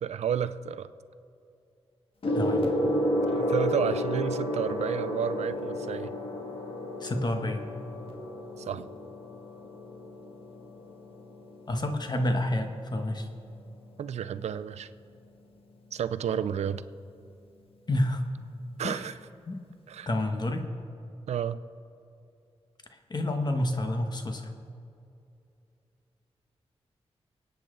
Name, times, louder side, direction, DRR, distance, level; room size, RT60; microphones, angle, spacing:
voice 1, 0.0-0.9 3.3-6.1 8.6-8.9 14.0-14.9 15.9-16.8 18.8-19.1 19.9-20.1 21.3-21.6, right 8 dB, 90° right, 13 dB, 0.5 m, -31 dB
Gong, 2.2-12.0 12.9-13.2, left 1 dB, 60° left, 2.0 m, -31 dB
voice 2, 7.0-7.6 11.7-13.3 17.9-18.2 18.8-19.1 19.5-19.6 20.1-20.7 23.1-24.5, left 1 dB, 40° left, 5 dB, 1.4 m, -29 dB
24.5 x 8.9 x 3.9 m, 2.6 s
cardioid pair, 70°, 11 cm